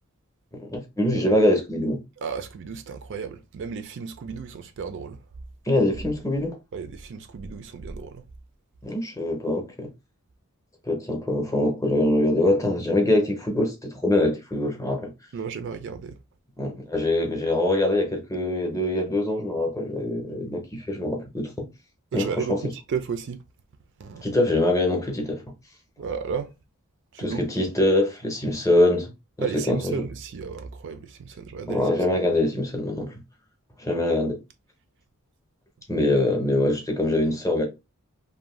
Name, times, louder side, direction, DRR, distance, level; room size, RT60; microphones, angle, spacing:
voice 1, 0.6-2.0 5.7-6.6 8.8-9.9 10.8-15.1 16.6-21.7 22.1-22.6 24.2-25.4 27.2-29.1 29.4-29.9 31.7-33.1 33.8-34.4 35.9-37.6, left 1 dB, 15° left, 0.6 m, -24 dB
voice 2, 2.2-5.2 6.7-8.2 15.3-16.2 22.1-23.4 24.0-24.2 26.0-26.5 27.1-27.4 29.4-31.9, right 6 dB, 55° right, 0.4 m, -33 dB
2.6 x 2.1 x 3.0 m
head